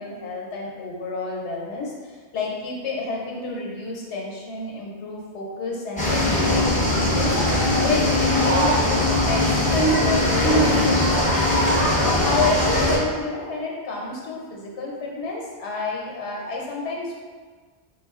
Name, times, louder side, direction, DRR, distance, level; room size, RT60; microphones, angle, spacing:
voice 1, 0.0-6.6 6.9-11.8 12.2-17.2, left 3 dB, 90° left, -2 dB, 1.0 m, -30 dB
sound 1, 6.0-13.0, left 1 dB, 10° left, 0.6 m, -20 dB
3.6 x 2.3 x 3.5 m, 1.5 s
omnidirectional pair, 1.1 m